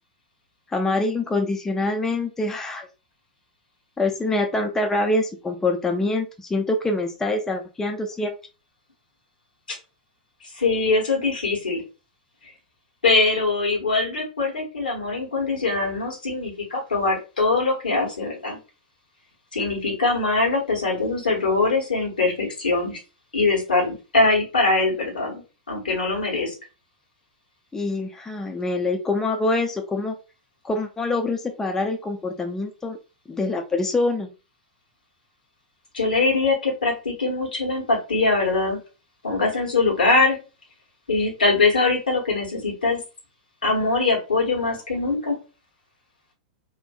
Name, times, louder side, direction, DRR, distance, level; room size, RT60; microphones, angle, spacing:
voice 1, 0.7-2.9 4.0-8.3 27.7-30.1 30.6-33.0 33.3-34.3, left 2 dB, 10° left, 4 dB, 0.3 m, -25 dB
voice 2, 10.5-11.8 13.0-18.6 19.5-23.0 23.3-25.4 25.7-26.5 35.9-38.8 39.2-40.4 41.1-43.0 43.6-45.4, left 3 dB, 75° left, 0 dB, 1.1 m, -22 dB
2.6 x 2.5 x 2.2 m, 0.31 s
figure-of-eight pair, 100°, 5 cm